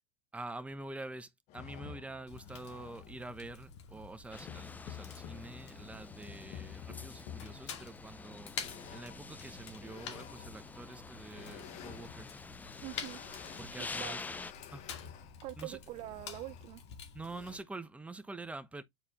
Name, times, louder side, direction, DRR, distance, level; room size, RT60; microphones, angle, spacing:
voice 1, 0.3-12.3 13.6-14.2 14.7-14.9 15.6-15.8 17.1-18.8, right 2 dB, 10° right, 1.0 m, -46 dB
sound 1, 1.5-17.6, left 10 dB, 50° left, 1.3 m, -51 dB
Fire, 2.3-17.6, left 7 dB, 85° left, 2.4 m, -49 dB
sound 2, 4.3-14.5, left 4 dB, 10° left, 0.5 m, -47 dB
voice 2, 12.8-13.2 13.8-14.2 15.4-16.8, right 18 dB, 45° right, 0.4 m, -44 dB
9.1 x 4.3 x 2.9 m
hypercardioid pair, 105°, 14 cm